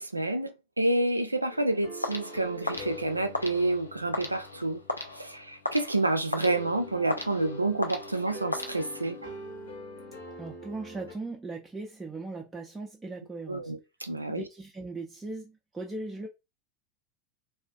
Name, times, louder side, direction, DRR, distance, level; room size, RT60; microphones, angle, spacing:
voice 1, 0.0-4.8 5.2-9.3 13.5-14.4, right 2 dB, 85° right, 0.3 m, -29 dB
sound 1, 1.5-11.1, left 1 dB, 70° left, 0.8 m, -44 dB
sound 2, 2.0-9.3, left 2 dB, 85° left, 0.3 m, -37 dB
voice 2, 10.4-13.7 14.3-16.3, right 3 dB, 10° right, 0.5 m, -38 dB
2.4 x 2.3 x 2.2 m
figure-of-eight pair, 80°, 0 cm